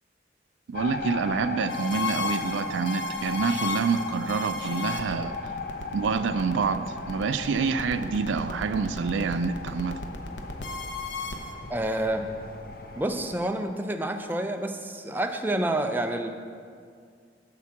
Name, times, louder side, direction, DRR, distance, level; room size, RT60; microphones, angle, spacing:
sound 1, 0.7-13.4, left 3 dB, 55° left, 0.6 m, -37 dB
voice 1, 0.7-5.4 5.9-10.0, right 5 dB, 90° right, 10 dB, 0.3 m, -27 dB
sound 2, 1.7-11.5, left 4 dB, 90° left, 0.8 m, -35 dB
voice 2, 11.7-12.3 13.0-16.3, right 1 dB, 10° right, 5 dB, 0.4 m, -28 dB
10.0 x 3.7 x 7.2 m, 2.2 s
head